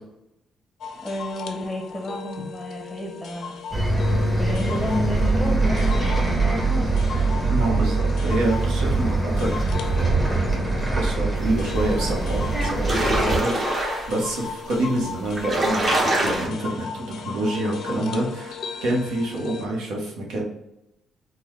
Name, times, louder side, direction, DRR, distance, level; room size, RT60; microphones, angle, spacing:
sound 1, 0.8-19.7, left 6 dB, 70° left, 0.4 m, -37 dB
voice 1, 1.0-3.6 4.4-7.0 12.8-13.1, left 1 dB, ahead, 0 dB, 0.7 m, -31 dB
Bus, 3.7-13.4, right 2 dB, 20° right, 0.9 m, -23 dB
voice 2, 7.5-10.4 10.9-20.4, right 1 dB, 90° right, -2 dB, 1.0 m, -27 dB
sound 2, 12.0-12.1 12.4-14.2 14.9-15.0 15.2-16.5, right 1 dB, 45° right, 1.1 m, -24 dB
3.7 x 2.2 x 3.1 m, 0.85 s
cardioid pair, 90°, 0 cm